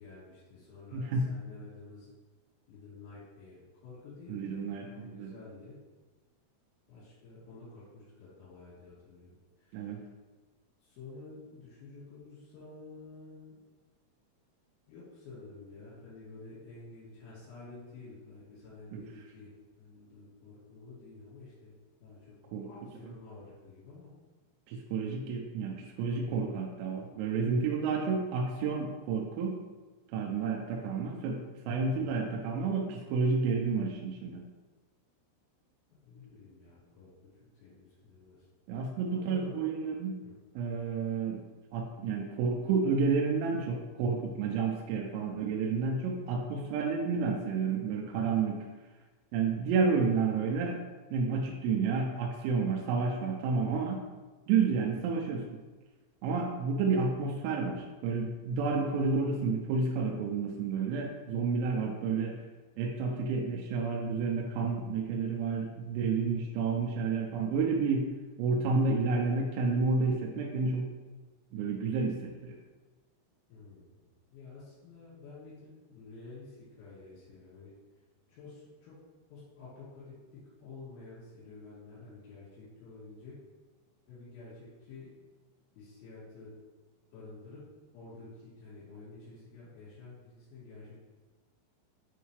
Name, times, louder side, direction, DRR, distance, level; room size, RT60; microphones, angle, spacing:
voice 1, 0.0-2.1 2.7-4.6 4.9-5.8 6.9-10.0 10.8-13.6 14.9-21.7 22.0-22.4 22.6-24.1 32.0-32.3 36.1-38.5 38.7-39.7 40.2-40.3 73.5-74.0 74.3-77.7 78.3-79.0 79.3-83.4 84.1-85.1 85.7-86.5 87.1-91.0, left 3 dB, 85° left, -11 dB, 4.8 m, -50 dB
voice 2, 0.9-1.3 4.3-5.4 9.7-10.0 18.9-19.0 22.5-22.7 23.0-23.1 24.7-29.6 30.1-31.4 31.7-34.4 38.7-40.2 40.6-41.4 41.7-48.7 49.3-50.8 51.1-54.0 54.5-55.4 56.2-62.4 62.8-68.1 68.4-70.9 71.5-72.6, right 4 dB, 85° right, 0 dB, 3.2 m, -30 dB
9.0 x 3.4 x 3.1 m, 1.3 s
omnidirectional pair, 5.9 m